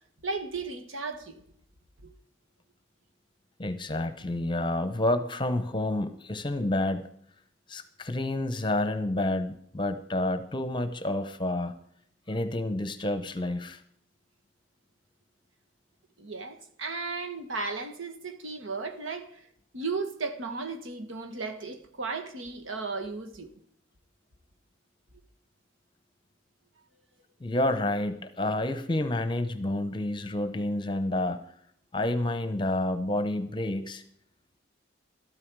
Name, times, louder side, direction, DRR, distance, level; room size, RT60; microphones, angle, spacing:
voice 1, 0.2-1.4 2.0-2.1 16.2-19.4 19.7-23.5, right 4 dB, 85° right, 1.7 m, -35 dB
voice 2, 3.6-7.1 7.7-11.7 12.3-13.8 27.4-31.4 31.9-34.0, left 1 dB, 25° left, 0.8 m, -29 dB
13.0 x 12.5 x 4.7 m
head